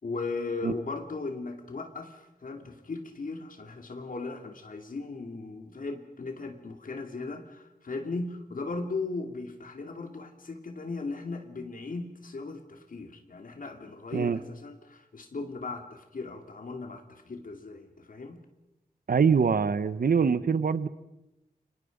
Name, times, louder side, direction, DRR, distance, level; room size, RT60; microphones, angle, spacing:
voice 1, 0.0-18.4, left 3 dB, 65° left, 5 dB, 2.7 m, -37 dB
voice 2, 19.1-20.9, right 6 dB, 70° right, 14 dB, 1.1 m, -24 dB
29.5 x 25.0 x 5.3 m, 0.93 s
wide cardioid pair, 100°, 15 cm